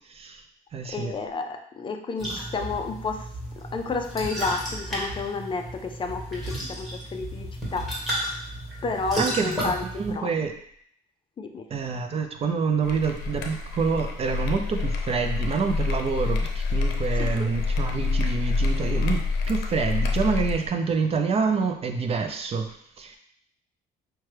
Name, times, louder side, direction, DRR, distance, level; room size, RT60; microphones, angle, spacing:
voice 1, 0.1-0.4 0.7-1.1 9.2-10.5 11.7-23.2, right 5 dB, 35° right, 5 dB, 0.5 m, -27 dB
voice 2, 0.8-3.3 3.6-7.9 8.1-8.3 8.8-9.8 10.1-10.3 11.4-11.7 17.2-17.5, left 4 dB, 30° left, 5 dB, 0.4 m, -31 dB
sound 1, 2.2-10.1, right 1 dB, ahead, 1.7 m, -33 dB
sound 2, 12.8-20.7, left 4 dB, 85° left, 0.6 m, -27 dB
5.7 x 2.2 x 3.2 m, 0.67 s
cardioid pair, 110°, 17 cm